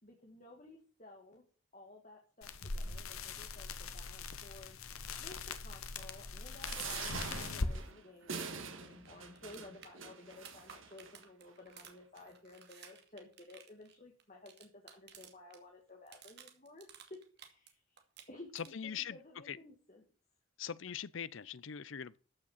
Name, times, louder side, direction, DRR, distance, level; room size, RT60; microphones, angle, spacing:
voice 1, 0.0-1.4 1.7-4.8 5.2-18.0 18.3-20.0, left 2 dB, 35° left, 2.3 m, -55 dB
sound 1, 2.4-7.7, left 3 dB, 90° left, 1.4 m, -41 dB
sound 2, 6.6-11.1 11.8-11.9 12.2-12.3, right 5 dB, 65° right, 2.2 m, -45 dB
sound 3, 9.1-15.6 15.9-17.7 18.0-18.9 21.0-21.1, right 7 dB, 50° right, 2.3 m, -56 dB
voice 2, 18.5-19.2 19.5-19.6 20.6-22.2, left 8 dB, 65° left, 0.6 m, -41 dB
14.0 x 6.5 x 5.7 m
head